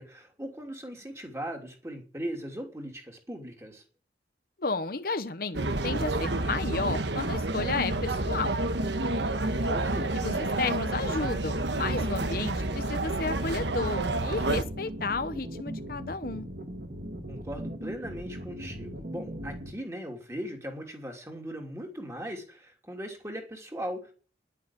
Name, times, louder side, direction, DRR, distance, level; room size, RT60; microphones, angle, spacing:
voice 1, 0.0-3.8 9.6-10.1 17.3-24.1, equal, 15° right, 3.0 m, -39 dB
voice 2, 4.6-8.6 9.6-9.7 10.1-16.5, left 3 dB, 50° left, 0.9 m, -32 dB
sound 1, 5.5-14.6, right 2 dB, 75° right, 1.3 m, -29 dB
sound 2, 14.4-19.7, equal, 50° right, 1.9 m, -39 dB
11.0 x 9.6 x 8.9 m
head